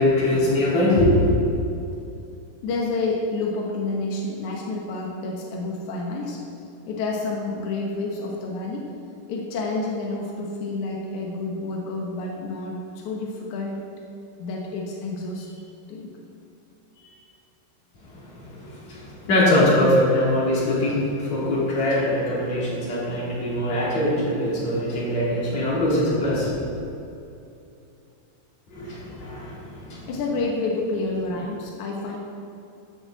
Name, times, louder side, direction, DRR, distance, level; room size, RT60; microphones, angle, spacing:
voice 1, 0.0-1.3 18.2-26.6 28.7-30.1, left 1 dB, 40° left, -7 dB, 3.9 m, -22 dB
voice 2, 2.6-6.4 6.8-8.8 9.3-13.8 14.4-16.1 17.0-17.2 30.1-32.2, left 3 dB, 75° left, -2 dB, 1.8 m, -29 dB
14.0 x 8.9 x 4.0 m, 2.6 s
omnidirectional pair, 5.2 m